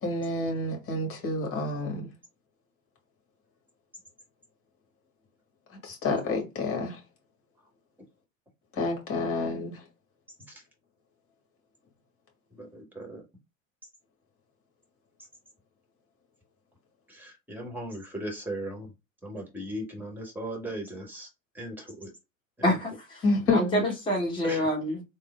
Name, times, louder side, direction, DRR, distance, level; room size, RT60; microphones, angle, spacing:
voice 1, 0.0-2.1 5.7-7.0 8.8-9.8 23.2-23.8, left 2 dB, 35° left, 1.6 m, -28 dB
voice 2, 12.5-13.2 17.1-18.9 19.2-21.3 21.5-22.1 22.6-22.7 24.4-24.7, right 1 dB, 5° right, 1.3 m, -37 dB
voice 3, 22.6-23.2 23.5-25.0, equal, 10° left, 1.2 m, -27 dB
3.7 x 2.0 x 3.3 m
figure-of-eight pair, 80°, 41 cm